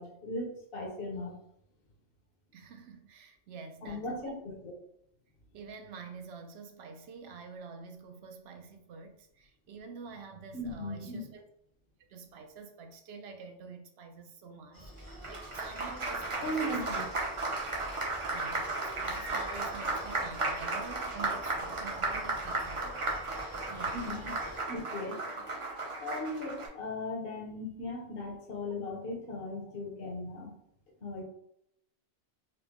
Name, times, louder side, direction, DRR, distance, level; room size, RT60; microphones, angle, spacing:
voice 1, 0.0-1.3 3.8-4.7 10.5-11.3 16.4-17.1 23.9-24.4 24.7-25.2 26.0-30.5 31.0-31.2, left 1 dB, 60° left, 1.0 m, -37 dB
voice 2, 2.5-4.3 5.5-11.4 12.1-17.1 18.3-24.0 24.5-24.7, right 5 dB, 70° right, 0.8 m, -48 dB
Screaming, 14.7-24.6, equal, 25° left, 0.7 m, -48 dB
Applause, 15.0-26.7, right 2 dB, 35° right, 0.6 m, -35 dB
4.1 x 2.1 x 2.9 m
omnidirectional pair, 1.2 m